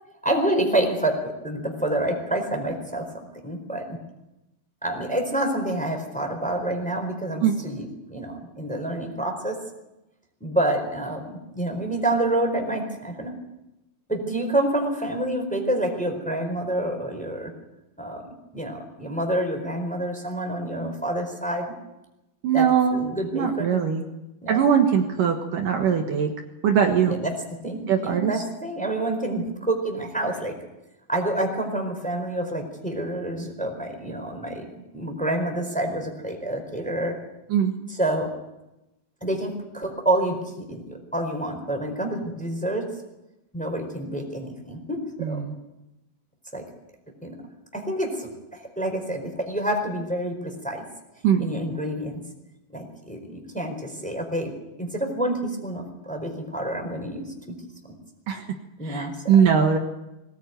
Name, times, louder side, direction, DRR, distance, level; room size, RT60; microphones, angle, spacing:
voice 1, 0.2-4.0 4.8-9.6 10.4-13.3 14.1-17.5 18.0-21.7 22.5-23.7 24.4-24.6 27.0-27.4 27.6-30.5 31.1-37.2 37.9-38.3 39.2-42.9 43.5-45.4 46.5-46.6 47.2-47.4 47.7-50.8 51.4-52.2 52.7-57.5 58.8-59.4, right 1 dB, ahead, 3 dB, 3.9 m, -28 dB
voice 2, 22.4-23.0 23.3-24.0 24.5-26.3 26.6-27.2 27.9-28.3 37.5-37.7 45.2-45.5 51.2-51.5 58.3-58.4 58.8-59.8, right 7 dB, 65° right, 3 dB, 2.9 m, -21 dB
22.5 x 18.5 x 9.3 m, 0.96 s
omnidirectional pair, 4.4 m